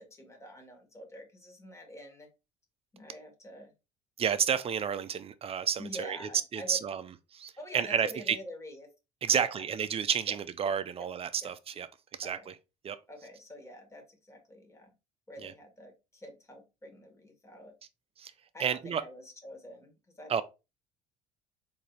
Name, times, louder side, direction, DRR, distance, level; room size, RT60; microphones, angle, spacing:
voice 1, 0.0-2.3 2.9-3.7 5.8-6.8 7.6-8.9 9.3-9.6 10.3-10.4 10.6-11.1 11.4-11.5 12.2-12.5 13.1-14.9 15.3-17.7 18.5-20.4, left 1 dB, 15° left, 1.4 m, -47 dB
voice 2, 4.2-8.4 9.2-11.9 12.2-12.5 12.8-13.0 15.4-15.5 18.2-18.3 18.6-19.0 20.3-20.4, right 7 dB, 35° right, 0.5 m, -31 dB
3.8 x 2.8 x 3.2 m
hypercardioid pair, 65°, 18 cm